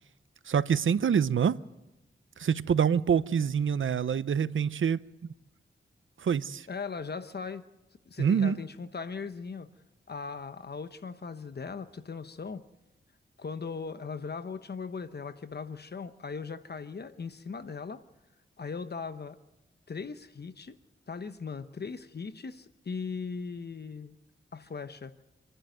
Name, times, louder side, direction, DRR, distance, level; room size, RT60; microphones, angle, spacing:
voice 1, 0.5-1.6 2.4-5.0 6.2-6.7 8.2-8.6, right 7 dB, 80° right, 0.7 m, -26 dB
voice 2, 6.7-7.6 8.1-9.7 10.1-12.6 13.4-18.0 18.6-19.4 19.9-20.8 21.1-24.1 24.5-25.1, left 5 dB, 55° left, 1.0 m, -39 dB
27.5 x 11.5 x 9.2 m
wide cardioid pair, 75°, 20 cm